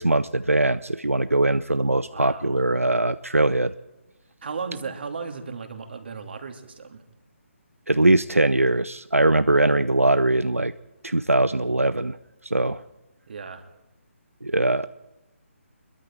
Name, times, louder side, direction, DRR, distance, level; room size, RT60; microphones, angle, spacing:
voice 1, 0.0-3.7 7.9-10.7 11.0-12.2 12.4-12.8 14.4-14.9, right 2 dB, 90° right, 14 dB, 0.6 m, -21 dB
voice 2, 2.1-2.6 4.4-7.0 13.3-13.6, right 5 dB, 50° right, 6 dB, 2.6 m, -35 dB
26.5 x 22.0 x 4.6 m, 0.96 s
figure-of-eight pair, 145°, 7 cm